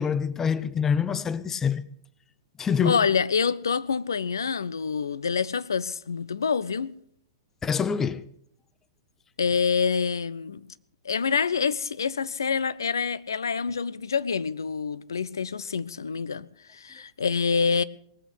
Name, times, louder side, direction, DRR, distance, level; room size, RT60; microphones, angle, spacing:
voice 1, 0.0-1.8 2.6-3.0 7.6-8.3, left 7 dB, 15° left, 0.6 m, -25 dB
voice 2, 2.8-7.0 9.4-10.6 11.0-17.8, left 6 dB, 75° left, 0.6 m, -26 dB
19.0 x 8.2 x 8.1 m
figure-of-eight pair, 105°, 2 cm